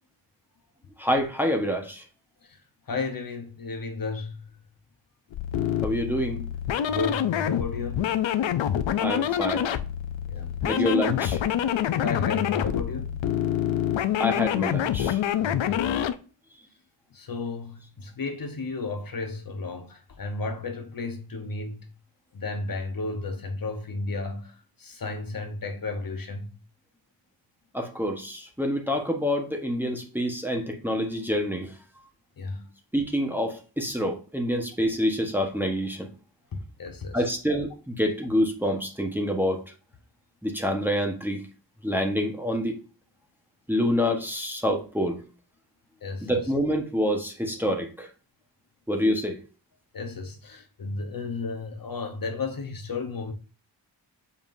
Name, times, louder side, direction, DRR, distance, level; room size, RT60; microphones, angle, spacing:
voice 1, 1.0-2.0 5.8-6.4 9.0-9.7 10.6-11.4 14.2-15.2 27.7-31.7 32.9-36.1 37.1-39.6 40.4-41.4 41.8-42.8 43.7-45.2 46.2-48.1 48.9-49.4, equal, 5° right, 1.2 m, -27 dB
voice 2, 2.9-4.4 6.9-8.1 10.3-10.7 12.0-13.2 15.4-16.0 17.1-21.9 22.3-26.5 32.4-32.7 36.5-37.2 46.0-46.4 49.9-53.3, left 3 dB, 50° left, 1.1 m, -33 dB
sound 1, 5.3-16.1, left 10 dB, 85° left, 0.7 m, -26 dB
7.2 x 5.5 x 2.7 m
wide cardioid pair, 135°, 45 cm